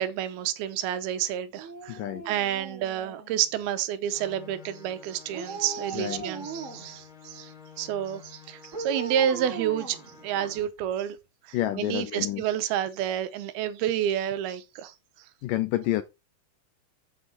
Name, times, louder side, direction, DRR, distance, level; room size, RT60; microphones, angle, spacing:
voice 1, 0.0-2.0 2.3-7.5 7.8-10.0 10.2-11.2 11.4-14.9, right 10 dB, 85° right, 2.8 m, -29 dB
Dog, 1.5-3.6 5.3-7.0 8.7-10.8 11.2-11.3, right 4 dB, 55° right, 0.8 m, -39 dB
voice 2, 1.9-2.2 5.9-6.2 11.5-12.4 15.4-16.0, left 15 dB, 80° left, 2.0 m, -29 dB
sound 1, 4.1-10.7, left 7 dB, 60° left, 1.3 m, -50 dB
8.0 x 7.9 x 4.2 m
omnidirectional pair, 4.5 m